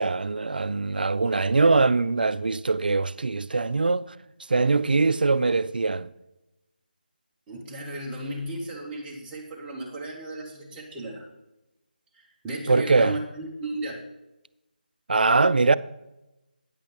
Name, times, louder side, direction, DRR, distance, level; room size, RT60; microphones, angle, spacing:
voice 1, 0.0-4.0 4.5-6.1 12.7-13.1 15.1-15.7, right 3 dB, 65° right, 0.3 m, -22 dB
voice 2, 7.5-11.3 12.1-14.0, right 1 dB, 10° right, 1.1 m, -35 dB
9.0 x 8.4 x 3.4 m
figure-of-eight pair, 155°, 5 cm